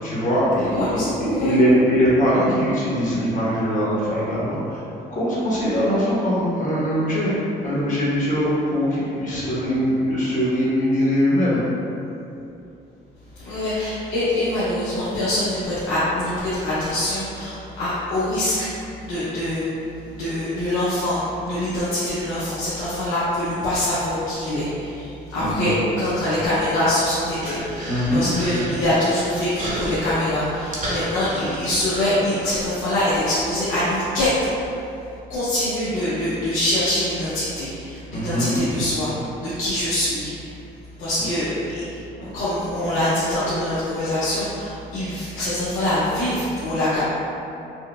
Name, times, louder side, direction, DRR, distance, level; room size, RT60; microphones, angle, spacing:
voice 1, 0.0-4.8 5.1-7.3 7.6-11.6 25.3-25.7 27.9-28.3 38.1-38.7 41.2-41.3 42.2-42.3, equal, 40° left, -8 dB, 1.1 m, -21 dB
voice 2, 0.7-1.5 13.4-19.7 20.1-34.7 35.3-40.5 41.0-42.0 42.3-47.0, left 1 dB, 85° left, -12 dB, 0.8 m, -24 dB
Human voice, 26.6-32.8, right 1 dB, 40° right, 0.9 m, -33 dB
4.3 x 2.1 x 2.3 m, 2.8 s
cardioid pair, 90°, 20 cm